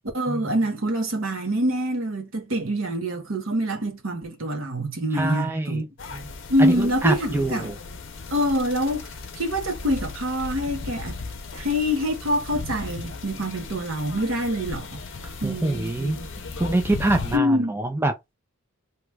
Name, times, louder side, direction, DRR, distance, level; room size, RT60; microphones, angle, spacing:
voice 1, 0.1-5.8 6.5-7.7 8.3-11.2 11.5-15.0 15.4-16.3 17.3-17.7, equal, 65° right, 1.0 m, -25 dB
voice 2, 5.1-5.8 6.1-6.2 6.6-7.7 15.2-16.2 16.6-18.1, right 2 dB, 10° right, 0.4 m, -25 dB
sound 1, 6.0-17.4, left 4 dB, 60° left, 0.6 m, -36 dB
2.9 x 2.3 x 3.3 m
head